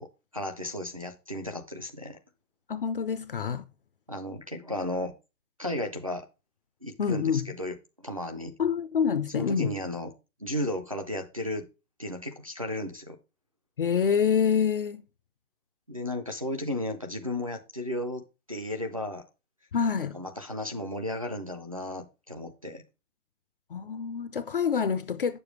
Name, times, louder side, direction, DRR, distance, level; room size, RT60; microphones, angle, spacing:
voice 1, 0.0-2.2 4.1-5.1 5.6-6.3 6.8-8.5 9.3-10.1 10.4-11.7 12.0-13.2 15.9-19.3 20.0-22.8, left 1 dB, 30° right, 0.4 m, -34 dB
voice 2, 2.7-3.6 7.0-7.5 8.6-9.8 13.8-15.0 19.7-20.2 23.7-25.4, left 7 dB, 45° left, 0.5 m, -26 dB
8.3 x 6.9 x 3.2 m
hypercardioid pair, 170°, 41 cm